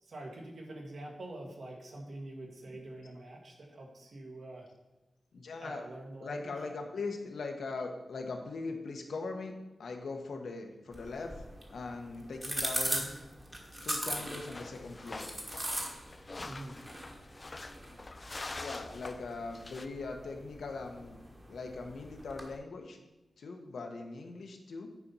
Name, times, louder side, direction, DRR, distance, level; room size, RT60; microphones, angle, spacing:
voice 1, 0.0-4.7 5.6-6.5 12.9-13.2 16.4-16.8, right 1 dB, 60° right, 0 dB, 1.7 m, -45 dB
voice 2, 5.3-5.9 6.2-9.5 9.8-11.3 11.7-13.1 13.8-15.3 17.9-18.0 18.6-21.2 21.5-23.0 23.4-24.9, left 3 dB, 85° left, 3 dB, 1.1 m, -40 dB
sound 1, 10.9-22.6, right 1 dB, 20° right, 1.3 m, -41 dB
sound 2, 14.5-19.9, left 2 dB, 30° left, 0.4 m, -45 dB
9.7 x 4.3 x 5.5 m, 1.0 s
wide cardioid pair, 160°, 0 cm